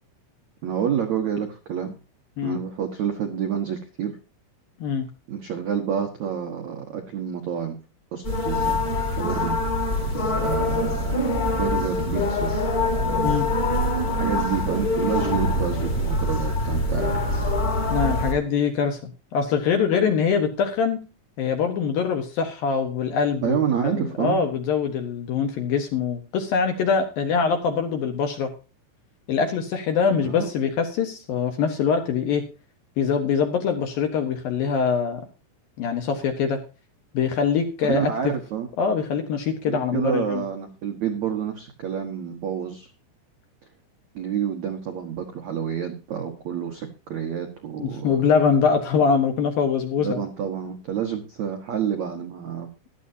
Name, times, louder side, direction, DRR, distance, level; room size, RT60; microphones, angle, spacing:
voice 1, 0.6-2.0 2.4-4.2 5.3-7.8 8.1-8.8 9.2-9.6 10.4-12.5 14.1-17.4 23.4-24.4 30.1-30.5 37.8-38.7 39.6-42.9 44.1-48.3 50.0-52.7, right 8 dB, 70° right, 4 dB, 1.7 m, -28 dB
sound 1, 8.2-18.3, left 2 dB, 30° left, 1.9 m, -24 dB
voice 2, 17.9-19.0 19.3-21.0 21.4-28.5 29.3-32.4 33.0-35.2 35.8-36.6 37.1-38.3 38.8-40.4 47.8-50.2, left 6 dB, 65° left, 5 dB, 2.5 m, -23 dB
15.5 x 12.0 x 2.8 m, 0.31 s
omnidirectional pair, 5.5 m